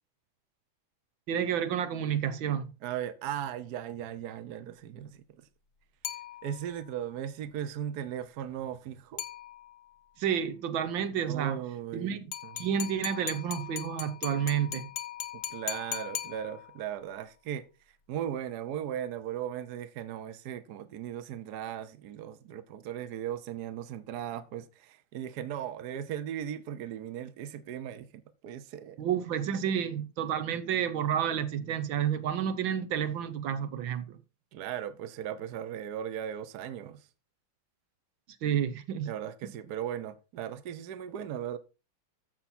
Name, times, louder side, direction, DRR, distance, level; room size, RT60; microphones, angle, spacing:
voice 1, 1.3-2.7 10.2-11.6 11.9-12.2 12.6-14.8 29.0-34.2 38.4-39.1, right 9 dB, 80° right, 1.7 m, -30 dB
voice 2, 2.8-5.5 6.4-9.2 11.3-12.7 15.3-29.0 34.5-37.1 39.0-41.6, right 10 dB, 60° right, 1.3 m, -38 dB
sound 1, 6.0-6.9 9.2-9.9 12.3-16.9, left 11 dB, 75° left, 1.8 m, -39 dB
14.0 x 5.8 x 4.3 m
omnidirectional pair, 2.1 m